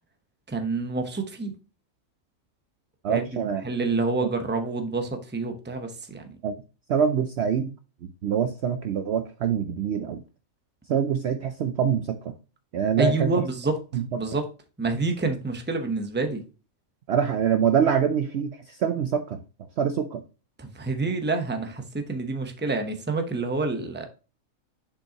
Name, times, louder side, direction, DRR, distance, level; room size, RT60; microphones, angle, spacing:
voice 1, 0.5-1.5 3.1-3.2 3.6-6.3 13.0-13.8 14.2-14.4 14.8-16.4 20.6-24.1, right 3 dB, 10° right, 0.7 m, -27 dB
voice 2, 3.0-3.6 4.2-4.3 6.4-6.5 6.9-7.7 8.2-10.2 10.9-12.3 12.7-13.3 13.9-14.4 17.1-19.4 19.8-20.2, right 7 dB, 65° right, 0.7 m, -25 dB
7.0 x 5.3 x 2.9 m
omnidirectional pair, 1.5 m